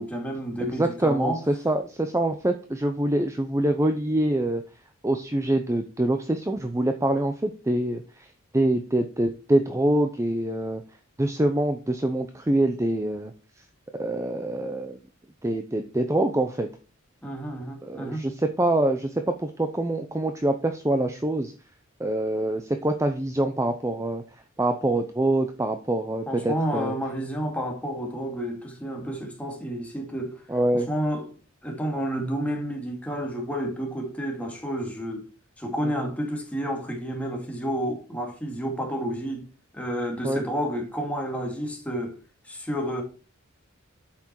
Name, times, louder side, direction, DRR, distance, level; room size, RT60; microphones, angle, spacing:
voice 1, 0.0-1.4 17.2-18.2 26.3-30.4 30.7-31.3 31.6-35.3 35.6-39.5 39.7-42.1 42.4-43.0, equal, 5° left, 2.3 m, -30 dB
voice 2, 0.7-4.6 5.0-8.3 8.5-10.8 11.2-13.3 14.0-15.0 15.4-16.7 17.8-21.5 22.0-24.2 24.6-26.9 30.5-30.9 35.8-36.1 40.2-40.4, right 1 dB, 15° right, 0.6 m, -25 dB
8.6 x 6.0 x 4.6 m
head